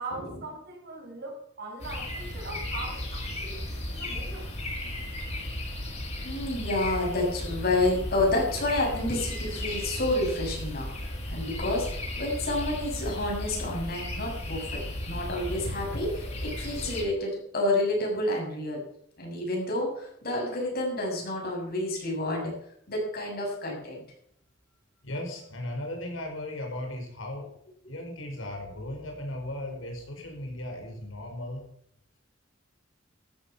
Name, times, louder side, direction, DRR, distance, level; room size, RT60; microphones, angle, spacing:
voice 1, 0.0-4.5, right 3 dB, 55° right, 1 dB, 5.3 m, -41 dB
sound 1, 1.8-17.0, left 1 dB, 35° left, 6.5 m, -35 dB
voice 2, 6.2-11.9 12.2-18.8 19.2-22.5 22.9-24.0, left 1 dB, 50° left, -1 dB, 6.8 m, -29 dB
voice 3, 25.0-27.5 27.9-31.6, left 1 dB, 90° left, 2 dB, 5.2 m, -36 dB
14.0 x 11.5 x 5.8 m, 0.68 s
head